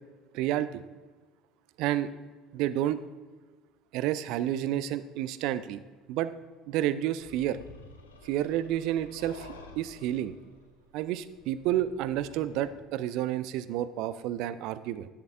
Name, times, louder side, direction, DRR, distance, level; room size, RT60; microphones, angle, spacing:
voice 1, 0.3-0.8 1.8-2.1 2.5-3.0 3.9-5.8 6.1-6.3 6.7-7.6 8.2-10.3 10.9-15.1, right 12 dB, 55° right, 14 dB, 0.3 m, -30 dB
sound 1, 7.2-12.7, left 3 dB, 75° left, 0.7 m, -51 dB
11.0 x 7.0 x 2.5 m, 1.4 s
figure-of-eight pair, 60°, 0 cm